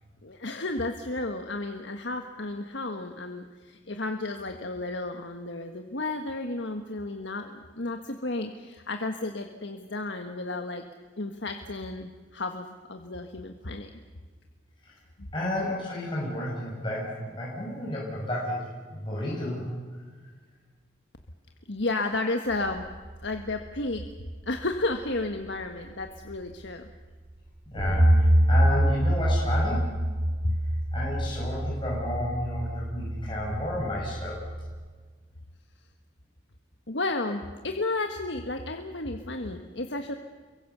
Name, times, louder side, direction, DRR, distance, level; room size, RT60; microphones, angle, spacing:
voice 1, 0.2-10.8 11.2-13.9 15.2-15.3 21.7-22.8 23.2-24.0 24.5-26.9 30.4-30.6 36.9-40.1, left 2 dB, 70° left, 5 dB, 1.5 m, -32 dB
voice 2, 15.3-19.6 27.7-29.9 30.9-34.4, left 1 dB, 25° left, -6 dB, 6.2 m, -32 dB
sound 1, 22.5-25.3 26.2-26.3 27.8-34.9, right 1 dB, 40° right, 2.4 m, -26 dB
29.0 x 23.5 x 6.9 m, 1.5 s
head